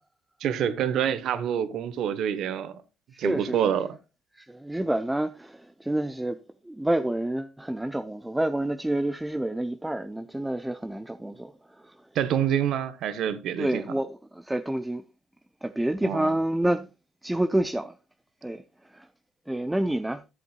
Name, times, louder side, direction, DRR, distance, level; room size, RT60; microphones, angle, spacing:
voice 1, 0.4-2.8 3.2-4.0 12.1-13.8 16.0-16.4, right 9 dB, 65° right, 1.1 m, -27 dB
voice 2, 3.1-3.7 4.4-6.4 6.7-11.9 13.6-15.0 15.6-16.9 17.2-17.9 18.4-18.6 18.9-19.1 19.5-20.2, right 1 dB, 10° right, 0.6 m, -28 dB
14.0 x 7.7 x 2.3 m
cardioid pair, 90°, 0 cm